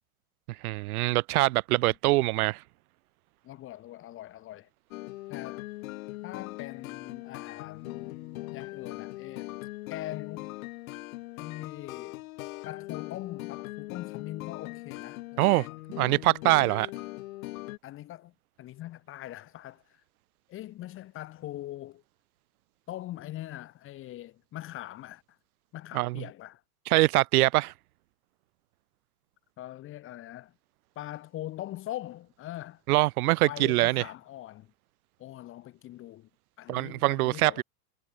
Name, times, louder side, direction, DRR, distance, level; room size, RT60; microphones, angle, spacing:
voice 1, 0.6-2.6 15.4-15.7 16.0-16.9 25.9-26.2 26.9-27.7 32.9-34.0 36.7-37.6, right 19 dB, 70° right, 0.6 m, -24 dB
voice 2, 3.4-4.7 5.3-5.6 6.2-9.6 9.9-10.6 11.4-12.2 12.7-16.2 17.8-18.3 18.6-20.0 20.5-22.0 22.9-25.2 25.7-26.6 29.6-30.5 31.0-32.8 33.4-34.7 35.2-36.3 36.6-37.6, left 14 dB, 25° left, 1.8 m, -42 dB
sound 1, 4.9-17.8, left 19 dB, 60° left, 1.0 m, -40 dB
supercardioid pair, 155°, 46 cm